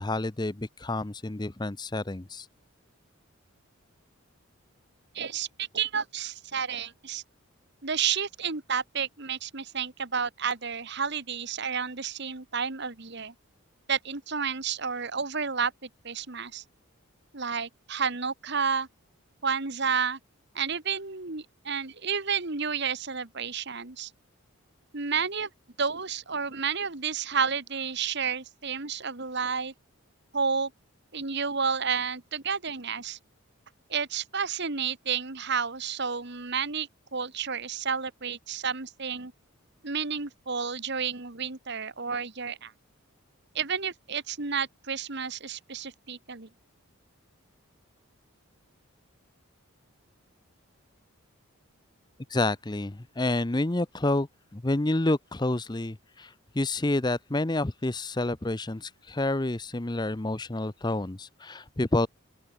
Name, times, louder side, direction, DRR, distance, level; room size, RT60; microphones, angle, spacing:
voice 1, 0.0-2.5 52.3-54.3 54.5-62.1, left 2 dB, 20° left, 0.7 m, -29 dB
voice 2, 5.1-7.2 7.8-13.3 13.9-15.7 16.0-16.6 17.3-18.9 19.4-20.2 20.5-24.1 24.9-25.5 25.8-29.7 30.3-30.7 31.1-33.2 33.9-39.3 39.8-42.7 43.5-46.5, right 6 dB, 50° right, 1.6 m, -31 dB
open air
head